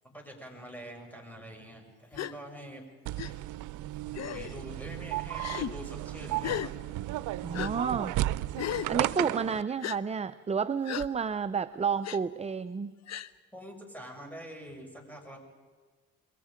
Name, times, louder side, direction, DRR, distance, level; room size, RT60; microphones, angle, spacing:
voice 1, 0.1-2.8 3.2-3.4 4.3-6.7 13.5-15.4, equal, 5° left, 2 dB, 6.7 m, -45 dB
Gasp, 2.1-2.3 3.2-3.3 4.1-4.5 5.4-5.7 6.4-6.7 7.5-7.7 8.6-8.9 9.8-10.0 10.9-11.1 12.0-12.2 13.1-13.3, left 11 dB, 60° left, 0.8 m, -35 dB
sound 1, 3.1-9.6, right 15 dB, 85° right, 0.6 m, -34 dB
voice 2, 7.4-8.2 8.9-12.9, right 6 dB, 20° right, 12 dB, 0.6 m, -31 dB
29.0 x 22.5 x 5.1 m, 1.4 s
cardioid pair, 90°, 30 cm